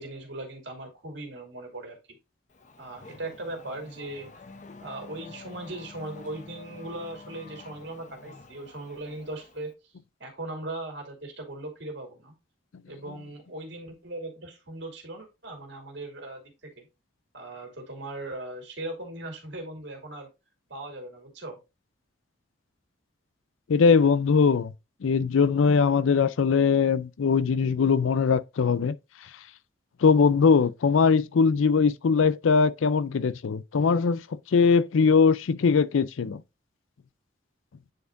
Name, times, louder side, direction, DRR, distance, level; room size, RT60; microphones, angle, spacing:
voice 1, 0.0-2.2 2.8-4.3 4.8-9.7 10.2-12.3 12.8-16.9 17.3-20.3 20.7-21.6, right 2 dB, 65° right, 2.6 m, -39 dB
Race car auto racing / Accelerating revving vroom, 2.5-9.7, left 3 dB, 40° left, 0.7 m, -48 dB
voice 2, 23.7-24.7 25.0-29.0 30.0-34.2 34.5-36.4, left 5 dB, 85° left, 0.4 m, -21 dB
9.6 x 4.3 x 2.5 m
head